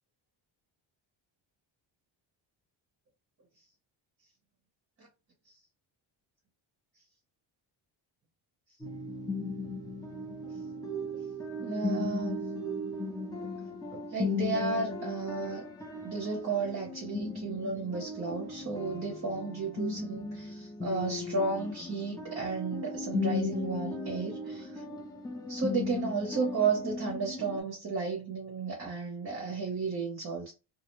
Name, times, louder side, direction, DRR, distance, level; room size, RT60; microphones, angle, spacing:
sound 1, 8.8-27.6, left 2 dB, 10° left, 0.5 m, -36 dB
voice 1, 11.6-12.4 14.1-15.6 16.0-24.8 25.5-30.5, right 4 dB, 30° right, 0.7 m, -33 dB
2.4 x 2.0 x 2.9 m
cardioid pair, 110°, 47 cm